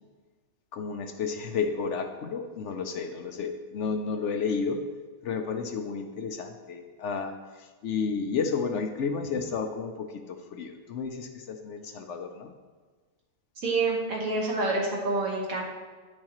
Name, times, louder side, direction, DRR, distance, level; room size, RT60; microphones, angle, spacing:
voice 1, 0.7-4.8 5.2-12.5, left 5 dB, 65° left, 6 dB, 0.8 m, -32 dB
voice 2, 13.6-15.6, right 3 dB, 75° right, -2 dB, 1.8 m, -27 dB
9.4 x 6.4 x 3.0 m, 1.4 s
omnidirectional pair, 1.5 m